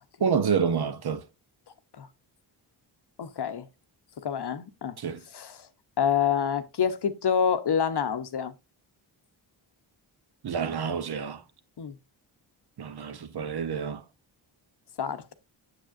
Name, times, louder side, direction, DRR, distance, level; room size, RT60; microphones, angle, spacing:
voice 1, 0.2-1.2 5.0-5.2 10.4-11.4 12.8-14.0, right 6 dB, 50° right, 0.8 m, -28 dB
voice 2, 3.2-3.7 4.2-5.0 5.3-5.7 6.0-8.5 11.8-12.0 15.0-15.3, left 7 dB, 55° left, 0.8 m, -27 dB
6.5 x 6.3 x 2.5 m
cardioid pair, 45°, 50 cm